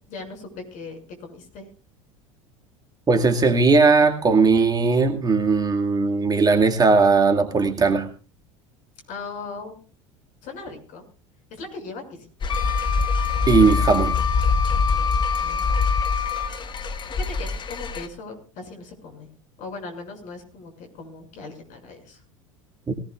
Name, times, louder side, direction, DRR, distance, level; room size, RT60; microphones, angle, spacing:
voice 1, 0.1-1.7 9.1-9.7 10.4-11.0 11.5-12.5 14.8-16.2 17.1-19.3 19.6-22.2, left 3 dB, 50° left, 4 dB, 6.4 m, -39 dB
voice 2, 3.1-8.1 13.5-14.1 22.9-23.0, right 4 dB, 25° right, 5 dB, 2.1 m, -18 dB
sound 1, 12.4-18.1, left 4 dB, 30° left, 1.4 m, -24 dB
Wind instrument woodwind instrument, 12.5-16.6, left 8 dB, 85° left, 1.4 m, -27 dB
20.5 x 18.5 x 2.4 m, 0.35 s
figure-of-eight pair, 75°, 17 cm